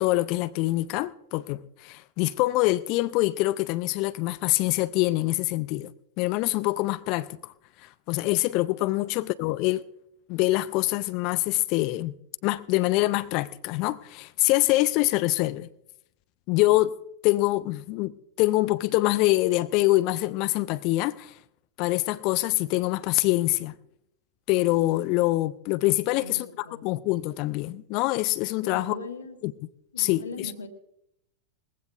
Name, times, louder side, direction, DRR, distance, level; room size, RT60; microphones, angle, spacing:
voice 1, 0.0-5.9 6.2-7.5 7.8-9.8 10.3-12.2 12.4-15.7 16.5-16.9 17.2-18.1 18.4-21.4 21.8-23.7 24.5-26.5 26.8-29.0 29.4-29.5 30.0-30.5, left 18 dB, 45° left, 0.5 m, -25 dB
voice 2, 26.1-27.0 28.6-29.4 29.9-30.7, left 3 dB, 75° left, 1.7 m, -40 dB
20.5 x 16.0 x 2.6 m
figure-of-eight pair, 90°, 0 cm